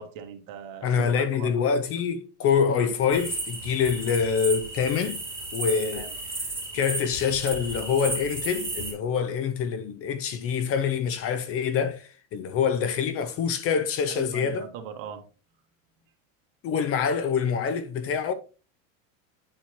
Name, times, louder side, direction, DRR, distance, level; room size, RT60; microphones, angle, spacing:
voice 1, 0.0-1.5 5.9-6.1 14.1-15.2, right 7 dB, 50° right, 1.6 m, -40 dB
voice 2, 0.8-5.2 5.5-6.1 6.7-14.7 16.6-18.3, left 6 dB, 35° left, 0.6 m, -25 dB
sound 1, 3.1-8.9, right 2 dB, 5° right, 3.0 m, -34 dB
9.7 x 4.3 x 2.9 m
supercardioid pair, 130°, 41 cm